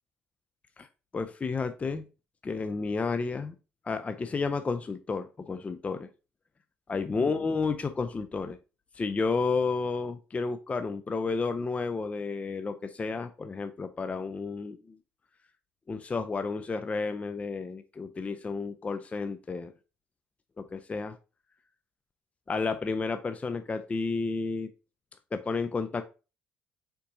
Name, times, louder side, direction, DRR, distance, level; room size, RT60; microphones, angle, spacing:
voice 1, 1.1-2.0 2.4-3.5 3.9-6.1 6.9-8.6 9.0-15.0 15.9-19.7 20.6-21.2 22.5-24.7 25.3-26.0, left 4 dB, 25° left, 9 dB, 0.4 m, -31 dB
4.4 x 4.0 x 2.6 m, 0.31 s
hypercardioid pair, 55°, 5 cm